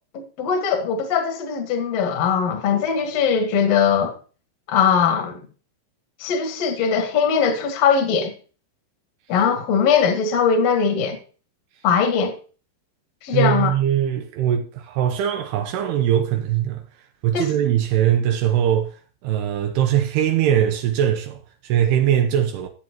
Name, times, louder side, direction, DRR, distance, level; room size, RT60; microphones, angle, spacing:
voice 1, 0.1-4.1 4.7-5.4 6.2-8.3 9.3-11.2 11.8-12.3 13.2-13.7 17.3-17.5, left 6 dB, 55° left, 2.0 m, -20 dB
voice 2, 13.3-16.8 17.2-18.9 19.2-22.7, right 10 dB, 85° right, 2.9 m, -21 dB
11.5 x 8.7 x 3.0 m
omnidirectional pair, 4.6 m